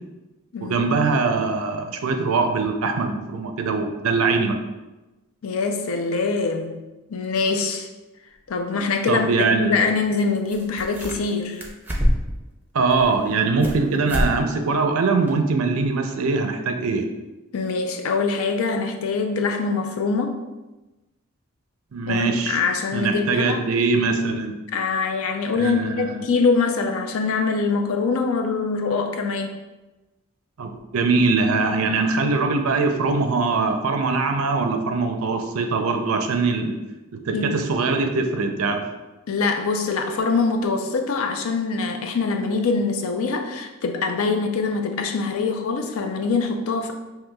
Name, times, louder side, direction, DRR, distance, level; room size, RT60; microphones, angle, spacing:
voice 1, 0.6-4.6 9.1-9.8 12.7-17.1 21.9-22.6 22.9-24.5 25.6-26.2 30.6-36.8 37.1-38.8, right 4 dB, 85° right, 5 dB, 0.5 m, -22 dB
voice 2, 5.4-6.8 7.1-7.9 8.5-9.3 9.6-11.6 17.5-20.4 22.1-23.6 24.7-29.6 37.3-37.6 39.3-46.9, left 4 dB, 85° left, 5 dB, 0.5 m, -24 dB
sound 1, 8.5-8.6 10.1-10.2 10.5-11.3 11.6-12.4 12.9-13.8 14.1-14.3 14.7-14.8 15.3-15.4, equal, 10° right, 0.5 m, -25 dB
5.5 x 2.8 x 2.3 m, 1.1 s
head